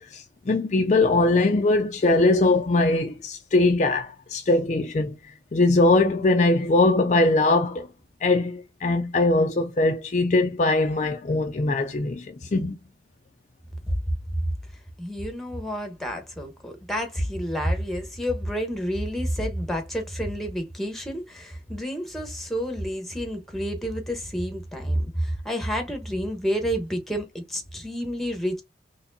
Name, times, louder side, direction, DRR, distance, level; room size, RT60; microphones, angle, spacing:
voice 1, 0.0-5.2 5.5-7.9 8.2-12.8, left 2 dB, 40° left, 0.4 m, -21 dB
voice 2, 15.0-28.6, equal, ahead, 1.1 m, -29 dB
4.2 x 3.2 x 2.7 m
head